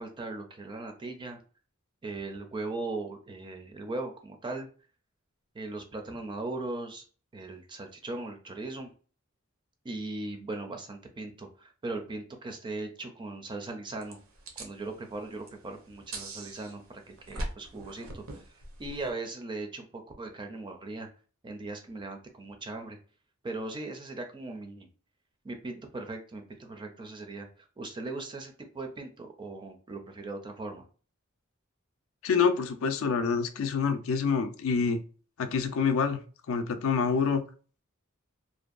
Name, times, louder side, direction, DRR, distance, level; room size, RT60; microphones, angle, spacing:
voice 1, 0.0-1.4 2.0-4.7 5.5-7.0 7.3-8.9 9.8-14.2 14.6-18.2 18.8-21.1 21.4-23.0 23.4-24.9 25.4-27.5 27.8-30.8, right 2 dB, 20° right, 4 dB, 0.4 m, -38 dB
sound 1, 14.0-19.1, right 1 dB, 75° right, 0.6 m, -42 dB
voice 2, 32.2-35.0 35.4-36.2 36.5-37.4, left 5 dB, 70° left, 8 dB, 0.4 m, -26 dB
2.6 x 2.2 x 2.4 m, 0.39 s
head